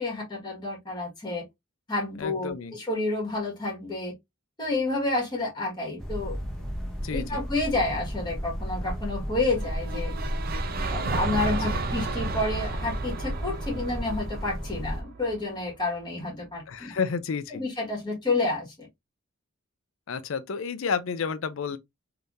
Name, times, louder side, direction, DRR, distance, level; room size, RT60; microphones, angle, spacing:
voice 1, 0.0-1.5 1.9-4.1 4.6-6.3 7.1-10.1 10.9-16.9 17.5-18.9, left 2 dB, 20° left, 1.5 m, -29 dB
voice 2, 2.2-2.7 7.0-7.4 11.4-11.9 16.7-17.6 20.1-21.8, left 5 dB, 70° left, 0.5 m, -31 dB
sound 1, 6.0-15.0, equal, 5° left, 0.8 m, -34 dB
sound 2, 9.5-15.7, right 3 dB, 45° right, 0.4 m, -32 dB
3.5 x 2.8 x 2.6 m
head